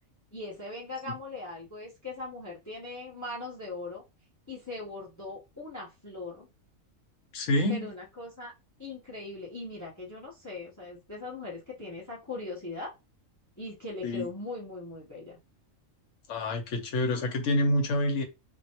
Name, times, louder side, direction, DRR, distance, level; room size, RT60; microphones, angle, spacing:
voice 1, 0.3-4.0 4.5-6.5 7.7-8.5 8.8-12.9 13.6-15.4, left 2 dB, 15° left, 0.9 m, -40 dB
voice 2, 7.3-7.9 14.0-14.3 16.3-18.2, left 1 dB, 70° left, 1.1 m, -27 dB
3.0 x 2.6 x 2.9 m
omnidirectional pair, 1.4 m